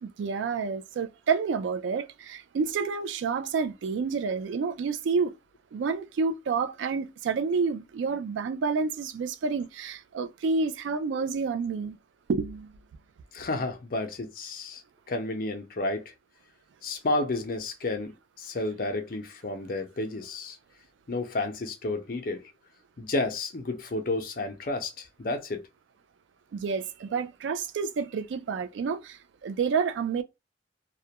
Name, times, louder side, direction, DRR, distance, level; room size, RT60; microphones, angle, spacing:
voice 1, 0.0-5.3 5.7-12.0 12.3-12.7 26.5-30.2, right 5 dB, 90° right, 0.3 m, -29 dB
voice 2, 13.3-14.8 15.1-16.1 16.8-18.1 18.4-20.6 21.1-22.4 23.0-25.6, left 2 dB, 50° left, 0.5 m, -31 dB
2.3 x 2.1 x 2.8 m
head